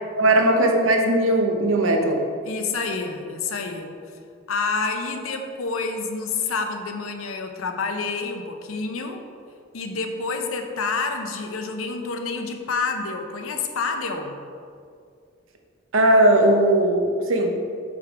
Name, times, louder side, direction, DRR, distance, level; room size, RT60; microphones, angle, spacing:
voice 1, 0.2-2.2 15.9-17.6, right 1 dB, 75° right, 3 dB, 0.8 m, -18 dB
voice 2, 2.4-3.9 4.5-9.2 9.7-14.3, left 4 dB, 80° left, 5 dB, 0.6 m, -28 dB
7.4 x 3.7 x 4.8 m, 2.4 s
head